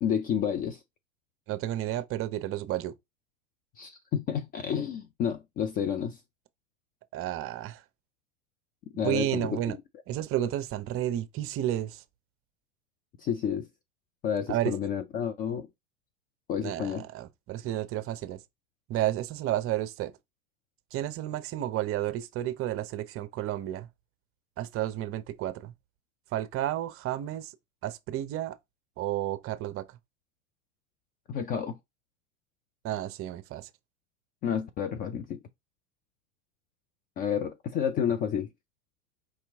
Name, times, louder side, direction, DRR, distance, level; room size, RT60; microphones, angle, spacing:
voice 1, 0.0-0.8 3.8-6.2 9.0-9.5 13.2-13.7 14.2-15.7 16.5-17.0 31.3-31.8 34.4-35.4 37.2-38.5, left 8 dB, 25° left, 0.3 m, -30 dB
voice 2, 1.5-2.9 7.1-7.8 8.9-9.8 10.1-12.0 14.5-14.8 16.6-18.4 18.9-20.1 20.9-23.9 24.6-25.7 26.3-27.5 27.8-28.6 29.0-30.0 32.8-33.7, right 13 dB, 35° right, 0.7 m, -31 dB
4.7 x 2.9 x 3.5 m
hypercardioid pair, 100°, 41 cm